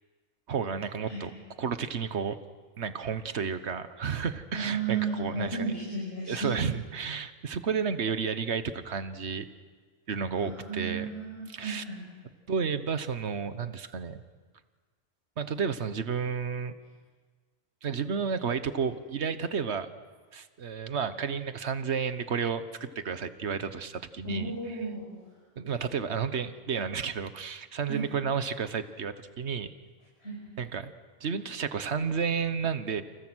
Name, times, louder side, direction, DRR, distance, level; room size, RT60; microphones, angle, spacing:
voice 1, 0.5-1.3 1.6-2.4 2.8-5.6 6.3-9.5 10.1-11.1 11.5-11.8 12.5-14.2 15.4-16.7 17.8-19.9 20.3-24.8 25.6-29.7 30.6-30.9 31.2-33.0, right 6 dB, 80° right, 11 dB, 1.4 m, -31 dB
voice 2, 4.5-6.6 10.4-12.1 24.2-25.2 27.9-28.0 30.2-30.4, right 4 dB, 75° left, -5 dB, 6.4 m, -34 dB
29.0 x 28.5 x 6.3 m, 1.5 s
omnidirectional pair, 1.1 m